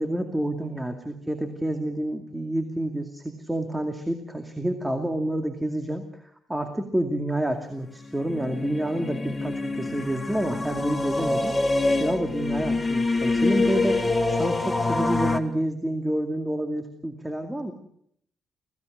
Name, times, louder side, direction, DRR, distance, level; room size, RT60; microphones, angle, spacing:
voice 1, 0.0-6.0 6.5-11.6 12.0-17.7, right 1 dB, 10° right, 6 dB, 2.3 m, -28 dB
sound 1, 8.1-15.4, left 3 dB, 20° left, 1.9 m, -25 dB
26.5 x 16.5 x 6.4 m, 0.69 s
cardioid pair, 90°, 0 cm